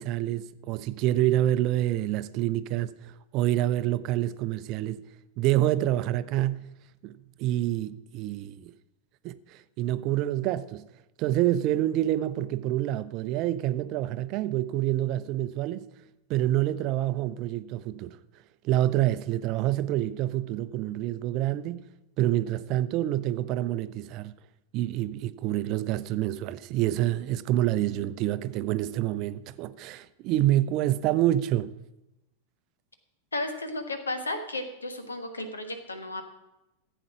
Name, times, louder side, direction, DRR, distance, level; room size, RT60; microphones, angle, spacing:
voice 1, 0.0-2.9 3.3-5.0 5.4-6.7 7.0-7.1 7.4-8.7 9.2-10.9 11.2-15.8 16.3-18.2 18.6-21.8 22.2-24.3 24.7-31.7, right 13 dB, 40° right, 0.5 m, -27 dB
voice 2, 33.3-36.2, left 2 dB, 75° left, 1.5 m, -33 dB
14.5 x 8.0 x 6.0 m
figure-of-eight pair, 90°, 0 cm